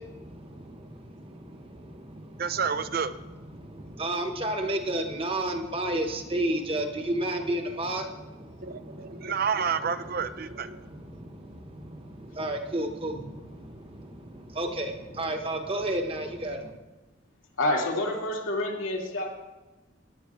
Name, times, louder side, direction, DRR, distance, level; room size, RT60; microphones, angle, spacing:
voice 1, 0.0-2.6 3.5-9.4 10.1-16.7, right 1 dB, 25° right, 5 dB, 1.1 m, -33 dB
voice 2, 2.4-3.1 8.6-10.8, right 6 dB, 50° right, 12 dB, 0.5 m, -29 dB
voice 3, 17.6-19.3, left 1 dB, 80° left, -1 dB, 2.4 m, -28 dB
17.0 x 11.0 x 3.6 m, 1.2 s
head